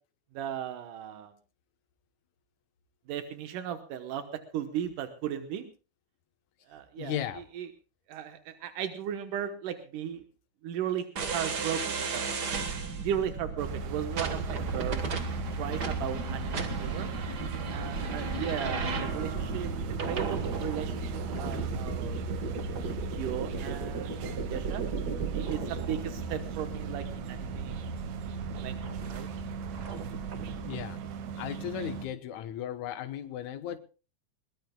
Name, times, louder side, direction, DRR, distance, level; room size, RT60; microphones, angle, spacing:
voice 1, 0.3-1.3 3.1-5.7 6.7-7.7 8.1-10.2 10.6-11.1 11.3-12.6 13.0-15.0 15.6-17.1 17.7-19.7 20.1-22.2 23.1-24.8 25.3-27.9 28.6-28.8 29.1-29.3, right 9 dB, 90° right, 8 dB, 2.8 m, -36 dB
voice 2, 7.0-7.4 30.6-31.0 31.4-33.8, left 10 dB, 70° left, 8 dB, 2.4 m, -36 dB
sound 1, 11.2-30.9, right 5 dB, 45° right, 1.5 m, -35 dB
sound 2, 13.6-32.1, right 3 dB, 70° right, 2.5 m, -38 dB
21.5 x 19.5 x 2.3 m, 0.34 s
omnidirectional pair, 3.6 m